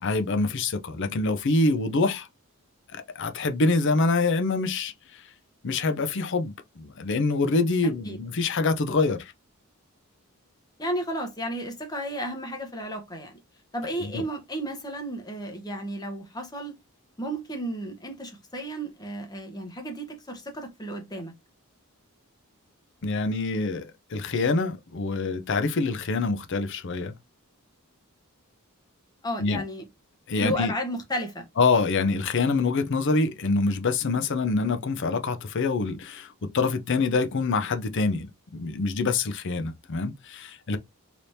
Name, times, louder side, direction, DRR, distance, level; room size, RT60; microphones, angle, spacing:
voice 1, 0.0-2.3 2.9-4.9 5.6-9.3 14.0-14.2 23.0-27.1 29.4-29.6 30.3-30.7 31.6-36.3 36.5-38.3 38.5-40.8, left 3 dB, 55° left, 0.6 m, -25 dB
voice 2, 7.8-8.2 10.8-13.4 13.7-16.8 17.2-21.3 29.2-29.8 30.4-31.5, equal, 15° left, 0.9 m, -33 dB
3.3 x 2.9 x 2.6 m
head